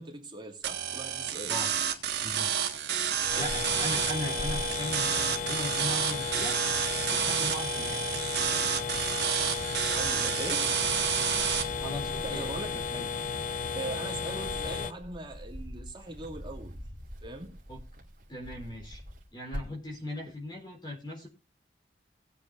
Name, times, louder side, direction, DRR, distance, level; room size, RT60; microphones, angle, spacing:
voice 1, 0.0-1.5 3.3-3.4 9.9-10.9 12.2-13.0 13.7-16.8 17.2-17.6, right 2 dB, 25° right, 2.6 m, -40 dB
sound 1, 0.6-11.6, right 9 dB, 75° right, 1.8 m, -30 dB
sound 2, 1.9-3.9 4.2-5.8 6.1-7.2 7.7-19.9, equal, 50° right, 2.7 m, -47 dB
voice 2, 2.2-2.5 3.3-6.6 7.1-8.0 11.8-12.6 17.7-17.8 18.3-19.0 19.3-21.3, left 1 dB, 25° left, 4.0 m, -38 dB
sound 3, 3.2-14.9, left 5 dB, 45° left, 0.7 m, -34 dB
20.0 x 8.3 x 2.7 m
head